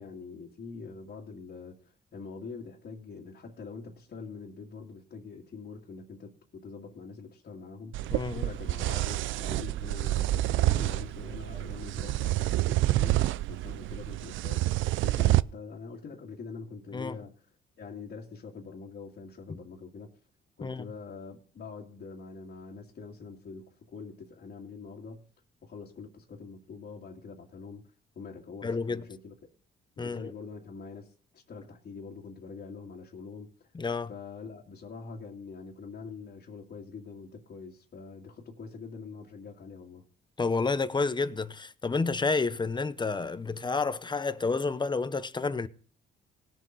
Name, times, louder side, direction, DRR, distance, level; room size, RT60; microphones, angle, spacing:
voice 1, 0.0-17.3 17.8-20.1 20.6-25.3 25.6-27.8 28.1-29.3 30.0-33.5 34.1-40.0, left 4 dB, 55° left, 2.2 m, -44 dB
sound 1, 7.9-15.4, right 16 dB, 80° right, 0.4 m, -28 dB
voice 2, 8.1-8.5 16.9-17.2 20.6-20.9 28.6-29.0 30.0-30.3 33.7-34.1 40.4-45.7, left 4 dB, 20° left, 0.8 m, -30 dB
19.0 x 7.4 x 3.9 m
cardioid pair, 90°, 20 cm